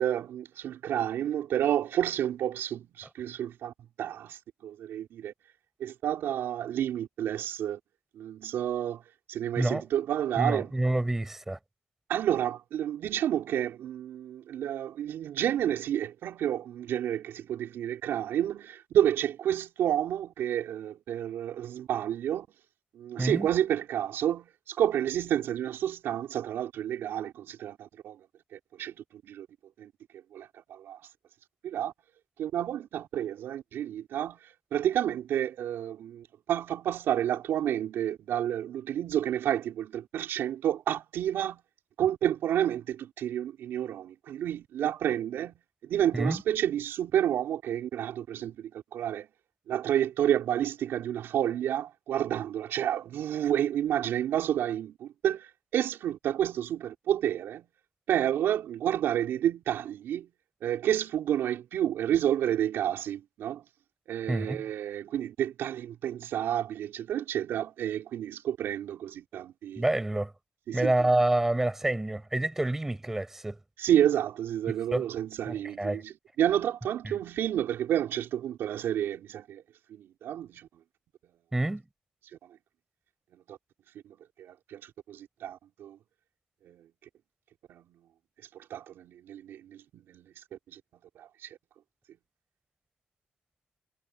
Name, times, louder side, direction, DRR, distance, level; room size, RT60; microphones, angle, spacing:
voice 1, 0.0-3.7 4.0-5.3 5.8-7.8 8.1-9.0 9.3-10.7 12.1-22.5 22.9-28.2 28.5-28.9 29.3-29.5 29.8-29.9 30.3-31.0 31.6-31.9 32.4-34.4 34.7-41.6 42.0-45.5 45.8-49.3 49.7-55.5 55.7-57.7 58.1-60.3 60.6-63.6 64.1-69.8 70.7-70.9 73.8-79.6 79.9-80.7 83.5-83.6 84.0-86.0 86.6-86.9 87.7-88.0 88.7-89.8 90.1-90.8 91.2-91.6, right 10 dB, 75° right, 4.6 m, -30 dB
voice 2, 10.4-11.6 23.2-23.5 46.1-46.4 64.3-64.6 69.8-70.3 70.7-73.6 74.9-75.1 75.5-76.0 77.0-77.1 81.5-81.8, right 1 dB, 10° right, 7.3 m, -28 dB
cardioid pair, 170°, 4 cm